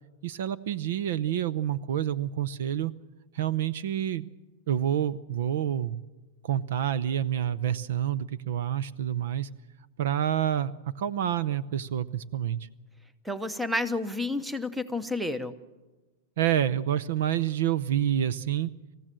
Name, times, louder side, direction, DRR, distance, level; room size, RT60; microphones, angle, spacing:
voice 1, 0.2-2.9 3.3-4.3 4.7-6.0 6.4-9.5 10.0-10.7 11.0-12.6 16.4-18.7, right 10 dB, 70° right, 20 dB, 0.7 m, -28 dB
voice 2, 13.2-15.5, left 2 dB, 5° right, 13 dB, 0.9 m, -30 dB
26.5 x 15.0 x 7.7 m, 1.2 s
supercardioid pair, 160°, 0 cm